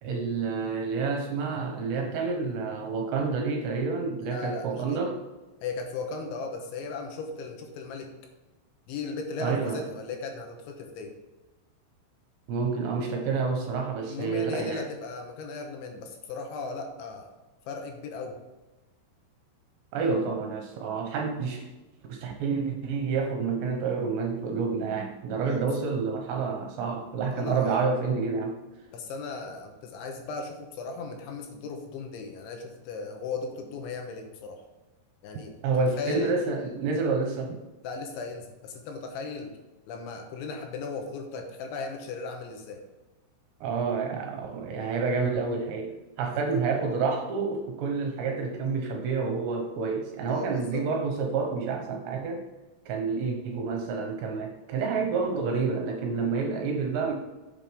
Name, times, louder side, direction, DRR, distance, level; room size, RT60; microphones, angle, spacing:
voice 1, 0.0-5.2 9.4-9.8 12.5-14.8 19.9-21.7 22.1-28.6 35.6-37.6 43.6-52.4 52.9-57.1, right 4 dB, 75° right, 2 dB, 2.9 m, -29 dB
voice 2, 4.2-5.0 5.6-8.1 8.9-11.1 14.1-17.3 17.7-18.4 25.4-25.9 27.3-27.9 28.9-34.6 35.2-36.3 37.8-39.6 39.9-42.8 46.3-46.6 50.3-50.8, left 4 dB, 75° left, 3 dB, 3.1 m, -37 dB
9.1 x 7.5 x 3.5 m, 1.1 s
omnidirectional pair, 5.8 m